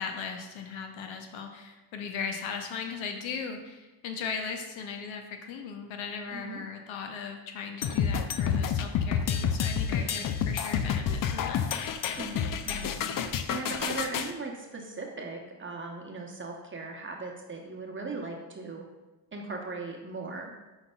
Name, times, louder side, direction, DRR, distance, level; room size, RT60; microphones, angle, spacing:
voice 1, 0.0-11.6, left 6 dB, 70° left, 4 dB, 0.7 m, -38 dB
voice 2, 6.3-6.6 9.9-10.1 12.2-12.9 13.5-18.8 19.3-20.5, right 3 dB, 25° right, 1 dB, 0.9 m, -38 dB
sound 1, 7.8-14.3, left 7 dB, 45° left, 0.4 m, -29 dB
5.3 x 4.0 x 2.3 m, 1.1 s
supercardioid pair, 55°, 48 cm